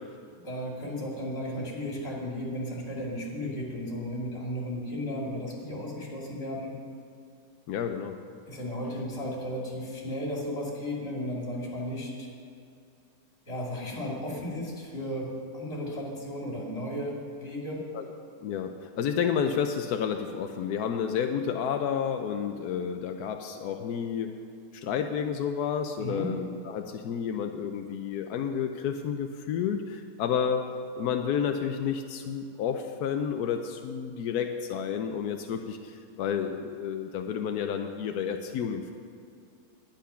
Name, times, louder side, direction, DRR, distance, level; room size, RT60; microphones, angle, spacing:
voice 1, 0.4-6.7 8.5-12.3 13.5-15.3 15.5-18.0 26.0-26.3, equal, 40° left, -3 dB, 2.8 m, -34 dB
voice 2, 7.7-8.2 17.9-18.0 18.4-24.4 24.7-30.7 30.9-38.9, left 7 dB, 85° left, 5 dB, 1.1 m, -30 dB
10.5 x 10.5 x 5.6 m, 2.5 s
omnidirectional pair, 1.6 m